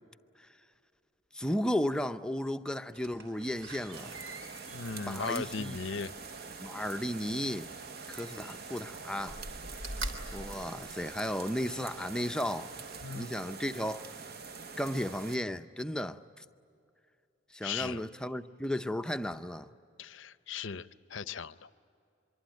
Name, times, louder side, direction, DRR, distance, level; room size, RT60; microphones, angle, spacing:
voice 1, 1.3-4.2 5.1-5.8 6.6-7.7 8.1-9.4 10.3-12.7 13.1-14.1 14.8-16.4 17.5-19.7, equal, 5° left, 0.6 m, -34 dB
Slam, 2.9-6.8 7.9-8.8 9.2-11.5 12.0-12.1, right 1 dB, 75° right, 3.4 m, -44 dB
sound 1, 3.4-13.0, right 2 dB, 30° right, 2.4 m, -56 dB
sound 2, 3.9-15.4, right 5 dB, 50° right, 0.9 m, -45 dB
voice 2, 4.7-6.1 13.0-13.5 17.6-18.0 20.0-21.7, left 5 dB, 75° left, 0.7 m, -38 dB
25.0 x 23.5 x 9.2 m
head